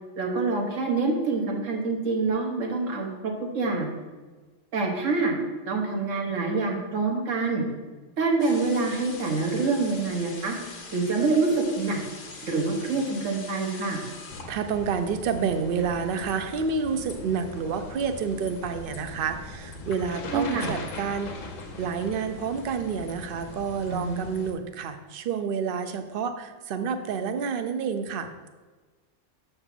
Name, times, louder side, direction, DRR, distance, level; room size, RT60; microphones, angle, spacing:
voice 1, 0.2-3.9 4.7-5.3 5.7-7.6 8.2-12.0 12.4-14.0 20.3-20.7 23.9-24.3, right 3 dB, 75° right, 1 dB, 1.6 m, -26 dB
sound 1, 8.4-14.4, left 3 dB, 55° left, 1.1 m, -43 dB
sound 2, 14.3-24.5, left 2 dB, 80° left, 1.4 m, -41 dB
voice 2, 14.5-21.3 21.8-28.3, right 6 dB, 55° right, 8 dB, 0.7 m, -29 dB
6.8 x 4.4 x 5.9 m, 1.3 s
omnidirectional pair, 1.3 m